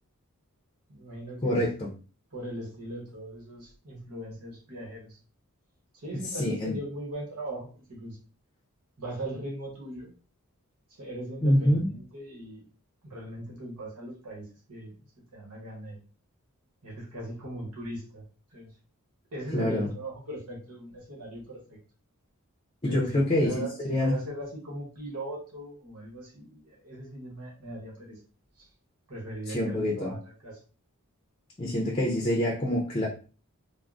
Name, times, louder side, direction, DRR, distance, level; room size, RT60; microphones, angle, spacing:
voice 1, 0.9-1.6 2.3-5.2 6.0-8.2 9.0-10.1 11.0-12.6 13.0-15.0 15.3-16.0 16.8-18.2 18.5-18.7 19.3-21.8 22.8-28.2 28.6-28.7 29.1-30.6, right 1 dB, 80° right, -3 dB, 1.0 m, -39 dB
voice 2, 1.4-1.9 6.4-6.8 11.4-11.9 19.5-19.9 22.8-24.2 29.5-30.1 31.6-33.1, left 1 dB, 25° left, -2 dB, 0.5 m, -26 dB
3.4 x 2.0 x 2.4 m, 0.37 s
head